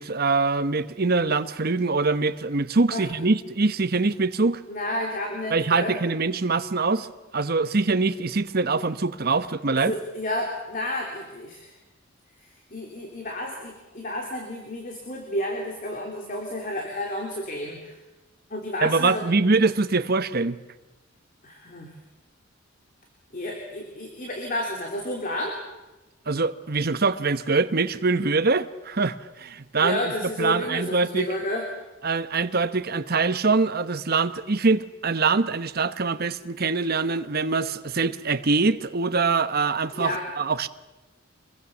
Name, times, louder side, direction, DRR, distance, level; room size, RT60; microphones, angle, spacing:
voice 1, 0.0-4.6 5.5-7.1 7.3-9.9 18.8-20.6 26.3-31.3 32.0-40.7, right 3 dB, 50° right, 1.0 m, -24 dB
voice 2, 4.7-6.0 9.9-11.7 12.7-17.9 18.5-19.3 21.4-21.9 23.3-25.6 29.8-31.7 39.9-40.2, left 1 dB, 40° left, 3.3 m, -31 dB
25.0 x 22.0 x 7.2 m
head